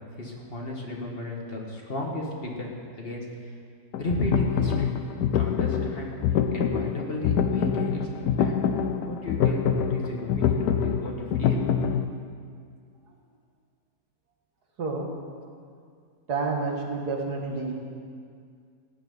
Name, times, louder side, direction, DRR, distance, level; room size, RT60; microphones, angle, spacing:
voice 1, 0.2-3.3 4.0-4.9 5.3-6.1 6.5-8.5 9.0-11.7, left 1 dB, 40° left, -1 dB, 1.8 m, -33 dB
sound 1, 3.9-12.1, left 8 dB, 85° left, 1.2 m, -25 dB
voice 2, 16.3-17.7, right 4 dB, 80° right, 0 dB, 2.3 m, -29 dB
15.5 x 6.1 x 9.1 m, 2.2 s
omnidirectional pair, 1.7 m